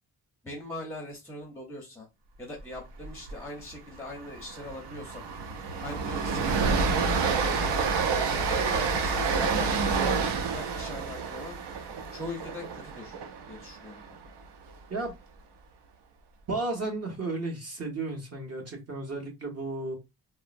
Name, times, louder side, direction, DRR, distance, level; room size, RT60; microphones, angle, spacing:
voice 1, 0.4-2.1 2.4-5.3 5.8-7.7 8.3-11.6 12.1-13.1 13.5-14.2, left 1 dB, 5° left, -1 dB, 0.6 m, -41 dB
Train, 3.0-3.3 3.6-3.7 4.1-14.3, right 5 dB, 90° right, 0.6 m, -28 dB
voice 2, 16.5-20.0, right 2 dB, 40° right, 1 dB, 1.1 m, -33 dB
3.6 x 2.0 x 2.5 m, 0.23 s
wide cardioid pair, 135°, 39 cm